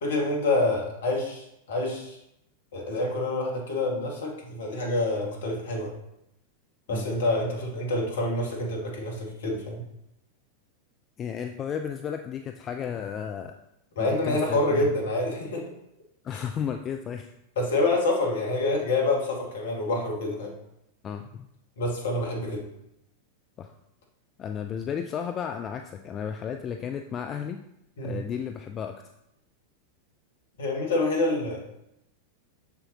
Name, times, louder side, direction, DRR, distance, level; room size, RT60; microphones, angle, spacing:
voice 1, 0.0-2.2 2.7-5.9 6.9-9.8 14.0-15.6 16.3-16.4 17.6-20.5 21.8-22.6 28.0-28.2 30.6-31.6, left 2 dB, 60° left, 0 dB, 1.9 m, -27 dB
voice 2, 11.2-13.6 14.0-14.9 16.2-17.3 21.0-21.5 23.6-23.7 24.4-27.6 28.0-29.0, left 8 dB, 30° left, 6 dB, 0.4 m, -33 dB
7.0 x 6.8 x 2.9 m, 0.81 s
figure-of-eight pair, 90°, 0 cm